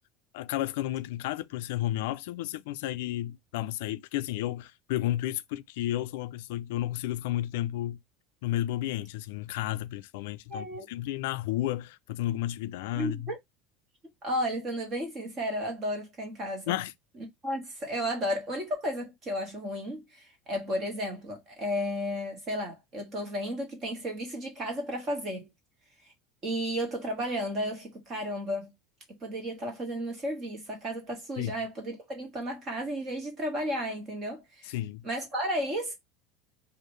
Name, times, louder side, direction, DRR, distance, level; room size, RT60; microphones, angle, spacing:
voice 1, 0.3-8.0 8.4-13.3 16.7-16.9 31.4-31.5 34.7-35.1, left 14 dB, 80° left, 0.3 m, -32 dB
voice 2, 10.5-10.9 13.0-13.4 14.2-16.8 17.4-25.5 26.0-26.1 26.4-28.7 29.2-34.7 35.0-35.9, equal, 25° right, 1.5 m, -33 dB
4.6 x 2.5 x 3.1 m
cardioid pair, 180°, 0 cm